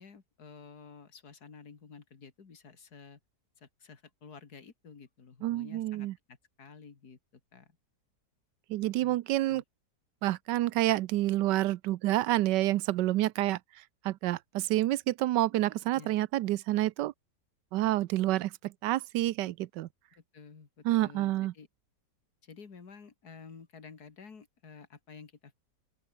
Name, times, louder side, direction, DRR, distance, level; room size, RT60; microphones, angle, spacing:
voice 1, 0.0-3.2 3.6-7.8 9.0-9.6 15.9-16.1 20.1-21.7 22.4-25.5, left 5 dB, 65° left, 2.9 m, -52 dB
voice 2, 5.4-6.1 8.7-9.6 10.2-13.6 14.0-17.1 17.7-19.9 20.8-21.5, right 15 dB, 90° right, 1.3 m, -28 dB
open air
omnidirectional pair, 1.8 m